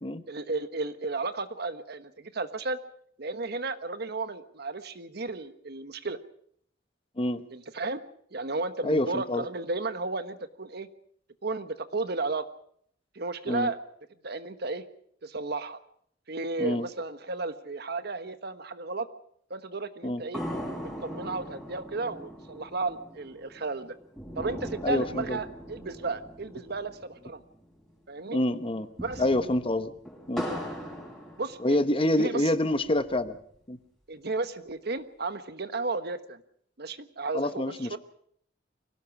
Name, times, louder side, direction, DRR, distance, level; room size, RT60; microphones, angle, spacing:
voice 1, 0.3-2.8 3.2-6.2 7.5-8.0 8.3-10.9 11.4-12.5 13.1-13.8 14.2-14.8 15.2-15.8 16.3-19.1 19.5-20.4 21.0-24.0 24.4-27.4 28.1-28.4 29.0-29.2 31.4-31.8 32.2-32.5 34.1-36.4 36.8-37.6 37.9-38.0, right 3 dB, 60° right, 10 dB, 1.3 m, -33 dB
voice 2, 8.8-9.4 13.5-13.7 16.6-16.9 20.0-20.2 24.8-25.4 28.3-28.9 29.2-29.9 30.3-30.5 31.6-33.4 33.7-33.8 37.3-38.0, left 1 dB, 30° left, 11 dB, 1.1 m, -27 dB
sound 1, 20.3-27.9 28.2-28.3 28.7-32.1 32.6-33.6, equal, 5° left, 5.7 m, -40 dB
24.5 x 17.5 x 6.1 m, 0.64 s
head